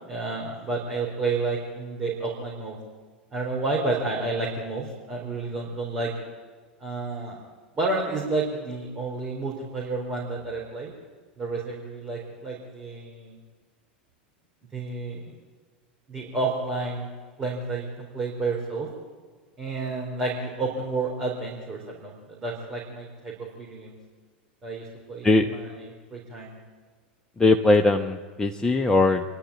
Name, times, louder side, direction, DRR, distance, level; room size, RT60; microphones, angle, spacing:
voice 1, 0.1-2.8 3.3-6.1 6.8-7.4 7.8-10.9 11.4-13.4 14.7-15.4 16.1-17.1 17.4-18.9 19.6-23.9 24.6-26.5, right 3 dB, 20° right, -3 dB, 4.1 m, -30 dB
voice 2, 27.4-29.2, left 2 dB, 10° left, 4 dB, 0.9 m, -20 dB
26.0 x 11.5 x 8.8 m, 1.5 s
figure-of-eight pair, 85°, 6 cm